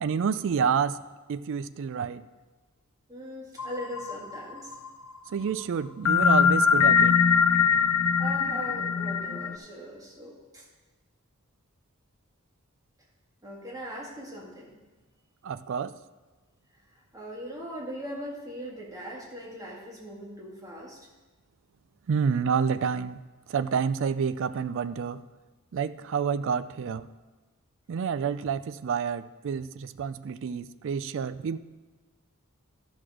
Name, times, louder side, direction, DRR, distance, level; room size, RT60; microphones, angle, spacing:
voice 1, 0.0-1.0 1.3-2.2 5.3-7.2 15.4-15.9 22.1-23.2 23.5-25.2 25.7-27.1 27.9-31.6, right 6 dB, 60° right, 14 dB, 0.3 m, -28 dB
voice 2, 3.1-4.7 8.2-10.7 13.4-14.8 16.9-21.0, equal, 15° right, -4 dB, 1.9 m, -40 dB
sound 1, 3.6-4.9 6.1-9.6, left 6 dB, 75° left, 0.5 m, -22 dB
12.0 x 6.2 x 4.9 m, 1.3 s
head